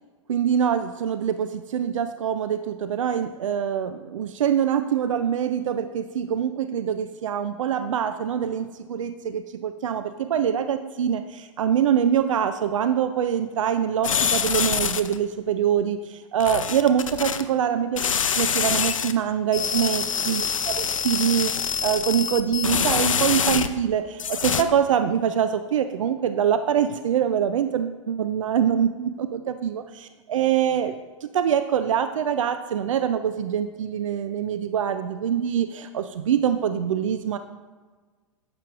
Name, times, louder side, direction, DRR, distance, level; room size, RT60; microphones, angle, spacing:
voice 1, 0.3-37.4, right 8 dB, 75° right, 10 dB, 0.4 m, -24 dB
sound 1, 14.0-15.2 16.4-17.4 18.0-19.1 19.5-23.9 24.2-24.6, left 7 dB, 85° left, 0.5 m, -25 dB
9.8 x 7.6 x 2.4 m, 1.4 s
hypercardioid pair, 105°, 16 cm